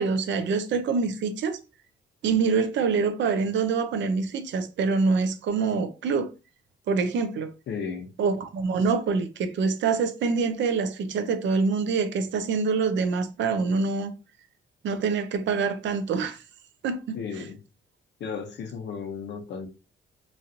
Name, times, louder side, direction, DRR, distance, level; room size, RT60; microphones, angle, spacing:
voice 1, 0.0-1.6 2.2-6.3 6.9-7.5 8.2-14.1 14.8-16.4 16.8-17.2, right 4 dB, 65° right, 0.6 m, -25 dB
voice 2, 7.7-8.1 17.1-17.6 18.2-19.7, left 6 dB, 65° left, 0.8 m, -34 dB
3.0 x 2.5 x 2.7 m
cardioid pair, 90°, 20 cm